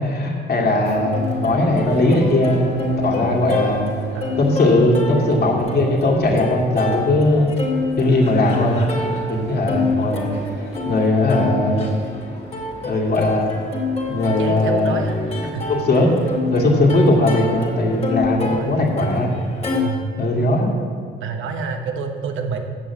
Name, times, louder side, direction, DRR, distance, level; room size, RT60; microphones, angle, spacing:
voice 1, 0.0-3.9 4.4-7.5 8.0-10.4 10.9-12.0 12.8-13.5 14.1-15.0 15.7-16.1 16.5-19.3 20.2-20.7, left 2 dB, 50° left, -3 dB, 2.2 m, -19 dB
Plucked string instrument, 0.9-19.8, left 3 dB, 30° left, 2.2 m, -28 dB
voice 2, 3.0-3.7 4.1-4.4 9.2-9.5 14.2-15.6 16.1-16.2 16.9-17.2 18.3-18.8 19.8-20.1 21.2-22.6, right 5 dB, 80° right, 5 dB, 1.1 m, -28 dB
7.6 x 6.6 x 8.2 m, 2.1 s
cardioid pair, 90°, 20 cm